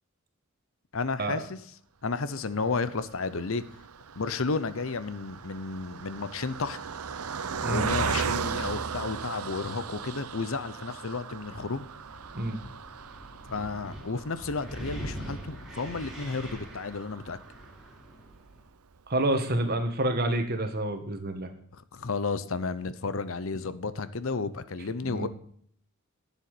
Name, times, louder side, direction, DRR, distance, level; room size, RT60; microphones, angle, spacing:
voice 1, 0.9-1.6 2.0-3.6 4.2-6.8 7.7-11.8 13.5-17.4 21.7-25.3, left 4 dB, 65° left, 14 dB, 0.8 m, -32 dB
Car passing by, 2.6-18.1 18.6-18.7 18.9-19.1, right 6 dB, 85° right, 0.8 m, -37 dB
Wind, 11.3-18.6, equal, ahead, 3.6 m, -43 dB
voice 2, 19.1-21.5 25.0-25.3, right 1 dB, 45° right, 7 dB, 1.7 m, -28 dB
11.5 x 7.2 x 8.4 m, 0.63 s
head